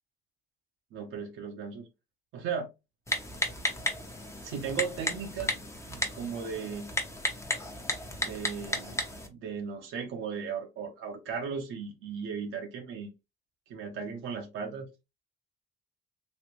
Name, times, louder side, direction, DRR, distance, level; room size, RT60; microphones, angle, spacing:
voice 1, 0.9-1.9 2.3-2.7 4.4-5.6 5.9-6.9 8.2-9.0 9.3-13.1 13.7-14.9, right 6 dB, 85° right, 0.9 m, -36 dB
Typing, 3.1-9.3, left 1 dB, 15° left, 0.9 m, -34 dB
3.2 x 2.8 x 3.0 m
cardioid pair, 90°, 20 cm